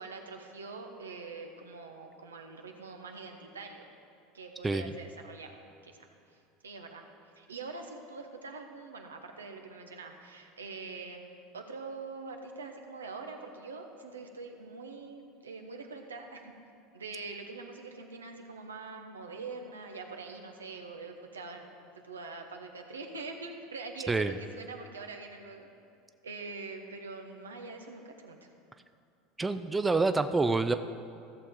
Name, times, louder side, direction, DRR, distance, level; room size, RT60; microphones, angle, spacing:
voice 1, 0.0-3.9 4.3-7.1 7.4-16.4 16.9-25.7 26.2-28.5, right 4 dB, 85° right, 3 dB, 0.9 m, -44 dB
voice 2, 29.4-30.7, right 3 dB, 15° right, 9 dB, 0.4 m, -27 dB
15.0 x 6.8 x 3.7 m, 2.5 s
figure-of-eight pair, 75°, 0 cm